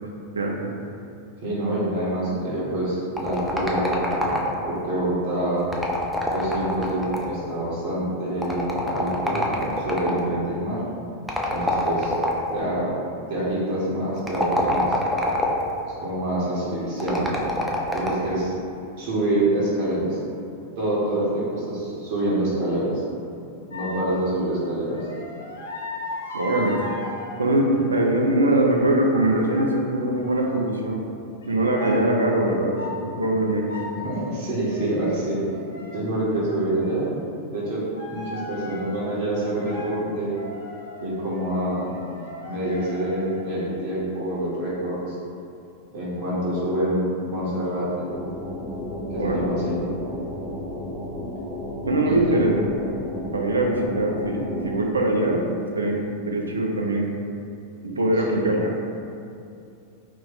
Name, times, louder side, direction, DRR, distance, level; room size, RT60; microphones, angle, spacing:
voice 1, 0.3-0.7 26.3-26.8 27.4-31.1 31.5-33.8 49.1-49.5 51.8-52.6 52.9-57.1 57.8-58.7, right 1 dB, 75° right, 0 dB, 0.4 m, -22 dB
voice 2, 1.4-4.4 4.7-5.7 6.3-10.8 11.5-12.1 12.5-13.0 13.3-15.0 16.0-17.5 17.9-18.5 19.0-20.2 20.8-23.0 23.7-25.1 34.0-35.4 35.9-37.1 37.5-40.3 41.0-41.9 42.4-45.2 45.9-48.1 49.1-49.8 52.0-52.6 58.2-58.6, right 1 dB, 45° right, -8 dB, 0.9 m, -26 dB
sound 1, 3.2-4.8 5.6-7.5 8.4-10.3 11.3-12.6 14.2-15.7 17.0-18.3, left 1 dB, ahead, 0.4 m, -26 dB
sound 2, 23.7-24.1 24.8-28.5 29.2-29.9 30.2-30.7 31.4-31.5 31.8-32.0 32.4-33.0 33.4-34.0 34.3-34.9 35.3-37.1 37.9-39.0 39.5-39.9 40.2-43.4, left 1 dB, 65° left, 0.6 m, -37 dB
sound 3, 48.1-54.7, left 1 dB, 25° left, 1.1 m, -33 dB
2.9 x 2.5 x 3.8 m, 2.6 s
figure-of-eight pair, 90°, 0 cm